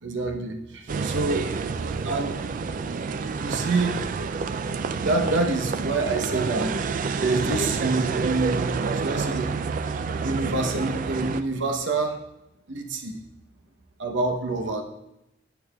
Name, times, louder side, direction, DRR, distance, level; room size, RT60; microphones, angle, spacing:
voice 1, 0.0-2.4 3.4-4.0 4.9-6.7 7.2-9.6 10.2-12.2 12.7-13.2 14.0-14.8, right 3 dB, 75° right, 4 dB, 0.9 m, -27 dB
sound 1, 0.9-11.4, right 4 dB, 45° right, 0.3 m, -28 dB
9.2 x 8.7 x 2.3 m, 0.88 s
head